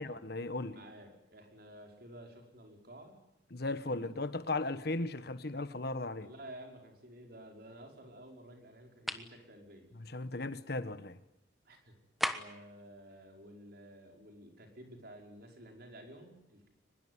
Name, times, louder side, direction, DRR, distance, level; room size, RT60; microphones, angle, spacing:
voice 1, 0.0-0.7 3.5-6.3 10.1-11.2, left 2 dB, 55° left, 1.3 m, -36 dB
voice 2, 0.6-3.2 3.9-4.2 6.2-9.9 11.6-12.0 12.3-16.7, right 1 dB, 50° right, 5.4 m, -52 dB
sound 1, 9.1-9.3 12.2-12.7, equal, ahead, 1.2 m, -35 dB
23.5 x 21.0 x 9.7 m
head